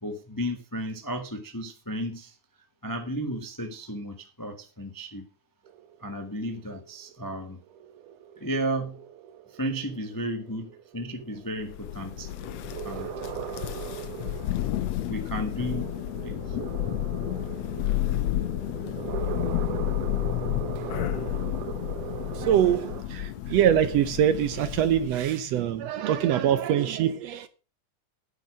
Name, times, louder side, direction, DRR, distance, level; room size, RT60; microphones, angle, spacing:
voice 1, 0.0-2.4 2.8-5.2 6.0-7.6 8.4-9.0 9.5-12.3 12.8-13.1 15.1-15.9 16.2-16.6, equal, 20° left, 0.5 m, -33 dB
sound 1, 5.7-23.0, right 9 dB, 85° right, 2.5 m, -40 dB
Thunder, 11.7-25.3, left 14 dB, 70° left, 1.9 m, -31 dB
voice 2, 22.3-27.5, right 10 dB, 70° right, 1.7 m, -24 dB
9.9 x 9.4 x 6.2 m
omnidirectional pair, 3.5 m